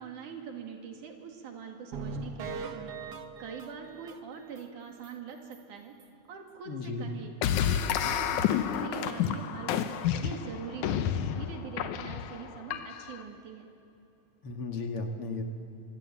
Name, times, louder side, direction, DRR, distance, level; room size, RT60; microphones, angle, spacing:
voice 1, 0.0-6.0 6.3-7.3 7.6-13.7, right 6 dB, 85° right, 3 dB, 3.7 m, -43 dB
sound 1, 1.9-4.6 5.0-5.1 5.5-5.6 6.0-6.1, right 4 dB, 70° right, 0.9 m, -40 dB
voice 2, 6.7-7.1 14.4-15.4, left 3 dB, 50° left, 3 dB, 2.4 m, -35 dB
sound 2, 7.4-13.2, left 9 dB, 85° left, 2.4 m, -30 dB
25.0 x 22.5 x 8.6 m, 2.9 s
omnidirectional pair, 3.4 m